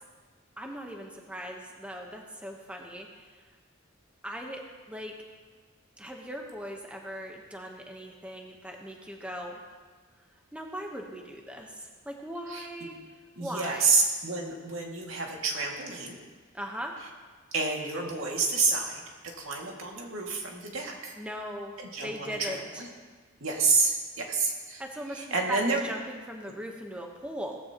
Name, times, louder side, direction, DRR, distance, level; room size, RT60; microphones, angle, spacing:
voice 1, 0.6-3.4 4.2-5.1 6.0-9.6 10.5-13.9 16.5-16.9 21.2-21.8 22.0-22.8 24.8-27.6, equal, 5° right, 1 dB, 1.0 m, -39 dB
voice 2, 13.4-16.2 17.5-19.0 19.4-21.1 21.8-22.9 23.4-24.8 25.1-25.8, right 4 dB, 75° right, -1 dB, 2.2 m, -29 dB
17.5 x 14.5 x 3.0 m, 1.5 s
head